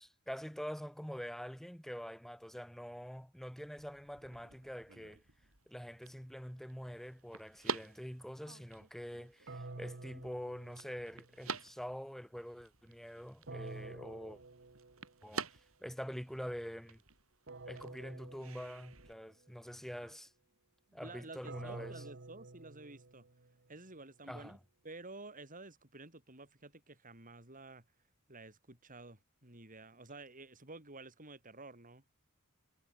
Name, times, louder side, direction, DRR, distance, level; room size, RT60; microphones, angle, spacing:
voice 1, 0.0-5.2 5.7-14.4 15.2-15.4 15.8-17.0 17.7-20.3 20.9-22.0 24.3-24.6, equal, ahead, 2.7 m, -45 dB
sound 1, 3.6-19.1, right 4 dB, 75° right, 7.2 m, -49 dB
sound 2, 9.5-11.5 13.5-15.3 17.5-19.3 21.5-23.7, right 2 dB, 60° right, 1.4 m, -50 dB
voice 2, 20.9-23.3 23.7-24.6 24.8-27.8 28.3-32.0, right 2 dB, 40° right, 7.0 m, -51 dB
head